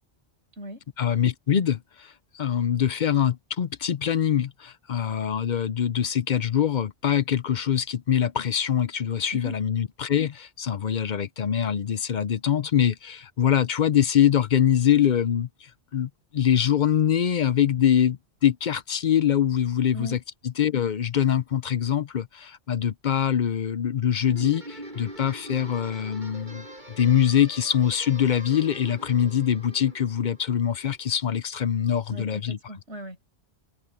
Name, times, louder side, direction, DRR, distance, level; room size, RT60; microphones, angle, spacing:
voice 1, 1.0-20.2 20.6-26.7 27.0-32.6, left 9 dB, 50° left, 0.7 m, -24 dB
Guitar, 24.3-31.0, right 1 dB, 45° right, 7.9 m, -43 dB
voice 2, 32.1-33.2, equal, 90° right, 6.0 m, -38 dB
omnidirectional pair, 1.1 m